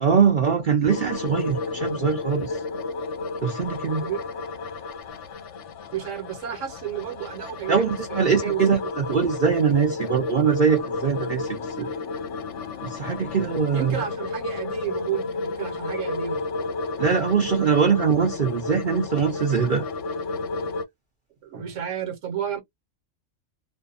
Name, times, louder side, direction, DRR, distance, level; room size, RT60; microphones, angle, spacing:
voice 1, 0.0-2.6 3.4-4.0 7.7-11.9 12.8-13.9 17.0-19.9, right 6 dB, 50° right, 0.7 m, -22 dB
sound 1, 0.9-20.8, left 3 dB, 70° left, 0.9 m, -32 dB
voice 2, 5.9-8.6 9.0-9.1 13.7-16.4 21.4-22.6, right 10 dB, 75° right, 1.2 m, -31 dB
2.6 x 2.2 x 2.4 m
omnidirectional pair, 1.3 m